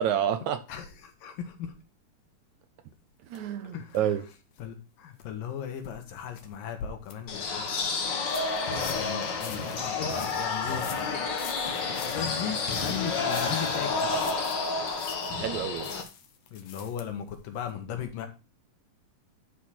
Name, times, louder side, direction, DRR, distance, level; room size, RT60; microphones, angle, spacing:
voice 1, 0.0-0.6 3.3-4.2 15.3-15.9, right 10 dB, 70° right, 1.9 m, -28 dB
voice 2, 0.7-1.7 3.6-4.1 4.6-7.7 8.8-10.8 11.9-14.5 16.5-18.3, left 8 dB, 85° left, 3.2 m, -37 dB
sound 1, 3.3-3.4 3.9-4.0 4.5-4.6 5.1-5.2 5.8-5.9 6.4-6.5 6.8-7.1 7.6-7.8 8.3-15.5 15.8-17.0 17.3-17.4 17.7-17.8, left 8 dB, 60° left, 2.0 m, -46 dB
sound 2, 7.3-16.0, left 4 dB, 45° left, 1.6 m, -30 dB
11.0 x 5.0 x 5.9 m
omnidirectional pair, 3.8 m